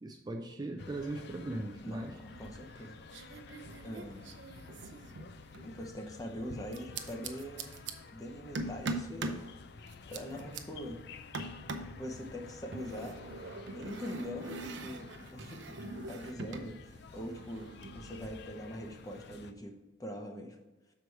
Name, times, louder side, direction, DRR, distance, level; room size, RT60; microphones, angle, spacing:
voice 1, 0.0-2.1, right 2 dB, 20° right, 3 dB, 0.4 m, -39 dB
sound 1, 0.8-19.5, left 4 dB, 55° left, 0.4 m, -51 dB
voice 2, 1.8-3.3 3.8-4.3 5.6-7.8 8.1-9.4 10.1-11.0 11.8-13.2 13.7-19.7 20.0-20.6, equal, 15° left, 3 dB, 0.7 m, -43 dB
sound 2, 2.3-2.8 3.1-5.7 6.7-7.9 8.5-9.4 9.9-10.6 11.3-12.0 12.7-16.7 17.0-18.3, right 2 dB, 60° right, 0.6 m, -42 dB
6.7 x 4.7 x 4.6 m, 1.1 s
head